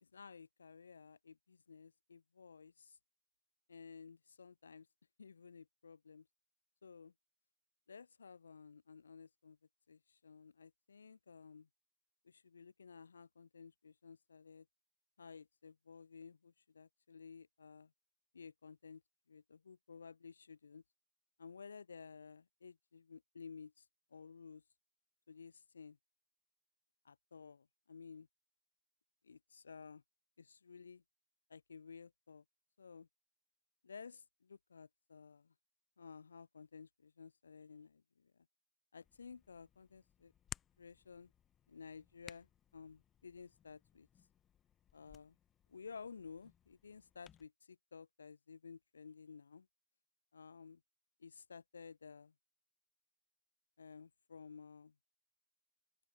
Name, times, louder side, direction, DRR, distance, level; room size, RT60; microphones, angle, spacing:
voice 1, 0.0-3.0 3.7-4.9 5.2-6.3 6.8-7.1 7.9-9.6 9.9-11.7 12.2-14.7 15.2-17.9 18.3-19.0 19.3-20.8 21.4-24.6 25.3-26.0 27.0-28.3 29.2-30.0 30.4-31.0 31.5-32.4 32.8-33.1 33.8-35.5 36.0-38.5 38.9-40.3 40.8-41.3 41.7-44.1 44.9-45.4 45.7-49.7 50.3-50.8 51.2-52.3 53.8-55.0, left 5 dB, 75° left, 0.4 m, -55 dB
Hands, 39.0-47.4, left 9 dB, 25° left, 0.8 m, -59 dB
open air
figure-of-eight pair, 90°, 0 cm